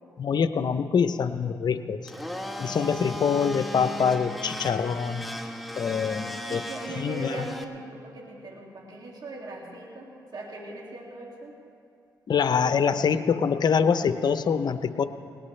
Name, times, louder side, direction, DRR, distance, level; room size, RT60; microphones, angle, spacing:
voice 1, 0.2-2.0 2.6-5.2 5.8-6.6 7.0-7.4 12.3-15.0, left 6 dB, 65° left, 11 dB, 0.7 m, -25 dB
Domestic sounds home sounds, 2.1-7.6, left 1 dB, ahead, 1.2 m, -36 dB
voice 2, 6.5-11.6, right 2 dB, 60° right, -1 dB, 2.4 m, -40 dB
19.5 x 18.5 x 3.3 m, 2.5 s
cardioid pair, 60°, 8 cm